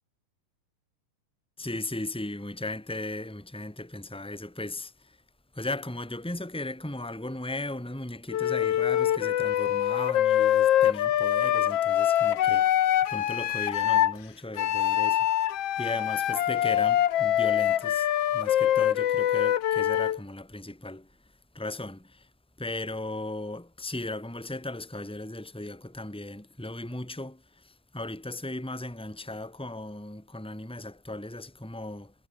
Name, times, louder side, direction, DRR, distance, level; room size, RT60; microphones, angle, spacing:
voice 1, 1.6-5.2 5.5-12.8 13.1-15.3 15.8-21.2 21.5-22.3 22.6-32.1, left 2 dB, ahead, 5.4 m, -37 dB
Wind instrument woodwind instrument, 8.3-14.1 14.6-20.2, left 11 dB, 60° left, 1.6 m, -24 dB
omnidirectional pair, 4.1 m